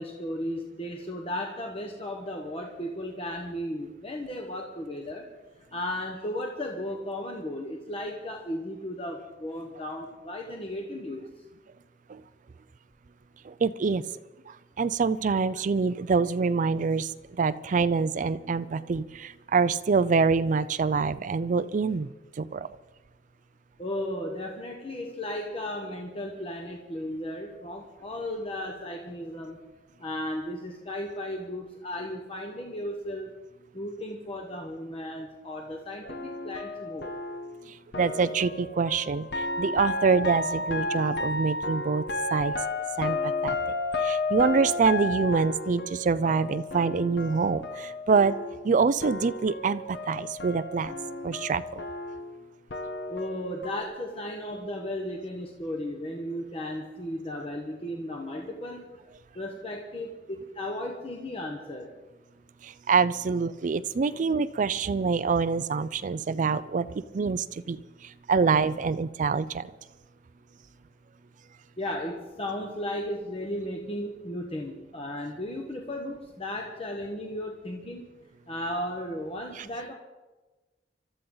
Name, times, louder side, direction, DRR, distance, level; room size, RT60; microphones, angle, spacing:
voice 1, 0.0-5.3 5.7-11.3 23.8-29.6 30.0-33.3 33.7-37.2 53.1-58.9 59.3-61.9 71.8-78.1 78.5-79.9, left 1 dB, 35° left, 1 dB, 1.2 m, -35 dB
voice 2, 13.6-14.0 14.8-17.1 17.4-22.1 22.4-22.7 38.0-39.3 39.6-42.0 42.3-42.5 43.0-43.2 43.4-43.5 44.0-48.3 48.6-50.9 51.2-51.6 62.9-66.9 67.1-67.8 68.3-69.6, right 5 dB, 45° right, 14 dB, 0.4 m, -25 dB
sound 1, 36.0-48.7 49.0-53.8, left 2 dB, 65° left, 1.1 m, -33 dB
24.5 x 13.0 x 3.9 m, 1.2 s
head